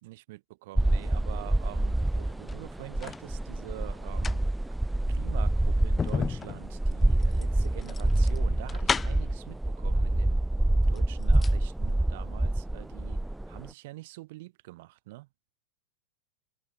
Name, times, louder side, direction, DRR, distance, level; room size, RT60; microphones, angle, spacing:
voice 1, 0.0-4.4 5.1-10.4 10.9-13.2 13.5-15.3, right 19 dB, 50° right, 3.7 m, -45 dB
Ocean Ambience Seaside Wa. long wave cycles - Seaside WA, 0.7-13.7, right 1 dB, 5° right, 1.2 m, -27 dB
sound 1, 2.3-3.3 4.0-9.4 10.3-10.4 10.8-11.6 11.9-12.0, left 5 dB, 15° left, 1.6 m, -34 dB
figure-of-eight pair, 90°, 0 cm